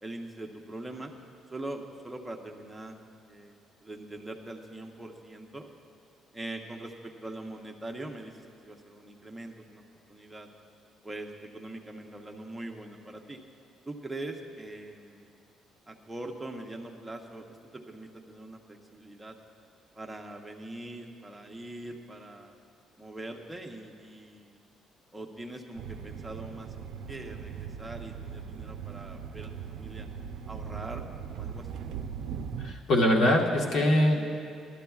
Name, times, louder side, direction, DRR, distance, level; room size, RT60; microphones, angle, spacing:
voice 1, 0.0-1.1 1.5-2.9 3.2-3.6 3.8-5.7 6.3-9.8 10.1-10.5 11.0-13.4 13.9-15.3 15.9-17.5 17.7-19.4 20.0-22.6 23.0-24.6 25.1-26.7 27.1-30.1 30.5-31.1 31.3-31.8, right 2 dB, 5° right, 1 dB, 0.7 m, -42 dB
sound 1, 25.8-32.7, right 7 dB, 75° right, 0.5 m, -39 dB
voice 2, 32.6-34.2, left 1 dB, 55° left, -1 dB, 1.3 m, -23 dB
20.0 x 12.0 x 2.3 m, 2.3 s
cardioid pair, 180°, 0 cm